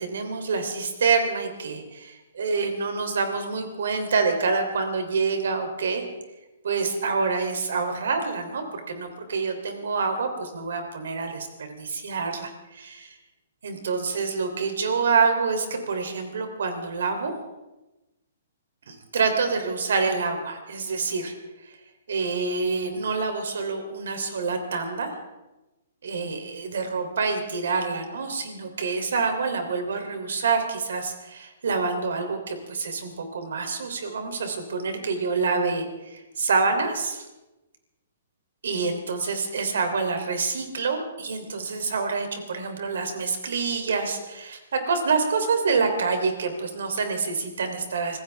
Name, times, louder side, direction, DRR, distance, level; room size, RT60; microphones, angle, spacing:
voice 1, 0.0-6.0 6.6-13.1 13.6-17.4 18.9-21.3 22.1-25.1 26.0-37.3 38.6-48.2, right 4 dB, 75° right, 5 dB, 3.2 m, -27 dB
25.0 x 16.0 x 3.5 m, 1.0 s
hypercardioid pair, 165°, 0 cm